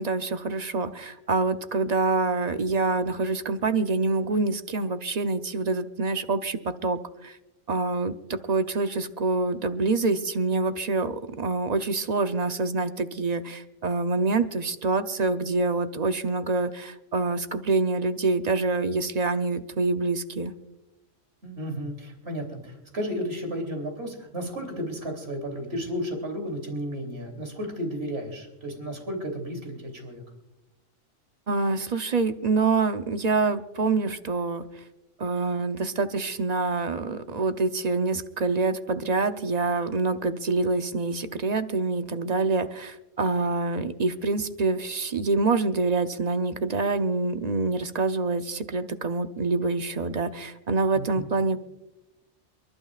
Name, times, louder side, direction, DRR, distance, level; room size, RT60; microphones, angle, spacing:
voice 1, 0.0-7.4 7.7-20.5 31.5-34.7 35.2-51.6, right 3 dB, 40° right, 9 dB, 0.7 m, -26 dB
voice 2, 21.4-30.2 50.9-51.3, equal, 55° right, 2 dB, 3.3 m, -33 dB
29.0 x 11.5 x 2.4 m, 0.97 s
omnidirectional pair, 1.3 m